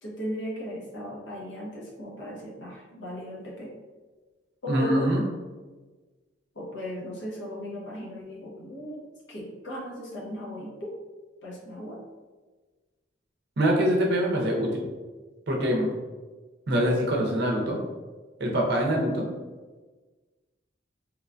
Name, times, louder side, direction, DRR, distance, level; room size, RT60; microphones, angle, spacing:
voice 1, 0.0-3.7 4.6-5.1 6.5-9.0 9.3-10.9 11.4-12.0, equal, 70° left, -4 dB, 0.8 m, -36 dB
voice 2, 4.7-5.2 13.6-14.9 15.5-15.9 16.7-17.8 18.4-19.3, equal, 60° right, 0 dB, 0.6 m, -24 dB
3.0 x 2.2 x 2.4 m, 1.3 s
head